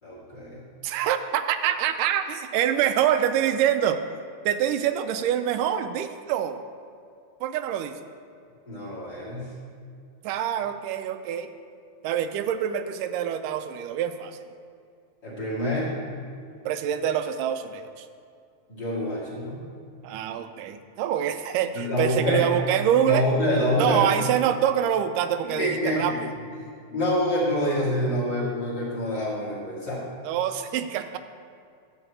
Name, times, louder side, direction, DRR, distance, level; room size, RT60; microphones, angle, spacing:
voice 1, 0.0-0.6 8.7-9.5 15.2-15.9 18.7-19.6 21.7-22.5 23.0-24.1 25.4-26.2 26.9-30.0, equal, 30° left, -8 dB, 2.7 m, -26 dB
voice 2, 0.8-4.0 4.5-6.6 7.4-8.0 10.2-11.5 12.0-14.4 16.7-18.1 20.0-23.3 23.8-26.1 30.2-31.2, right 10 dB, 90° right, 9 dB, 2.2 m, -25 dB
11.5 x 4.0 x 7.8 m, 2.3 s
omnidirectional pair, 3.7 m